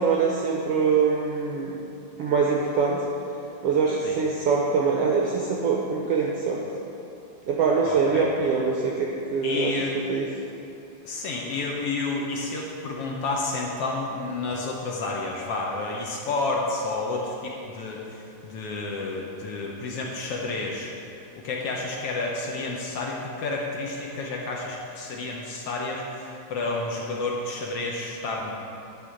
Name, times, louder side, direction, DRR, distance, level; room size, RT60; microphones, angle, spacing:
voice 1, 0.0-1.8 2.2-3.0 3.6-6.6 7.5-9.8 10.1-10.3, right 5 dB, 75° right, -1 dB, 1.4 m, -23 dB
voice 2, 7.9-8.3 9.4-10.0 11.0-20.9 21.4-28.5, left 3 dB, 70° left, -1 dB, 1.5 m, -30 dB
11.0 x 4.1 x 7.6 m, 2.9 s
omnidirectional pair, 3.5 m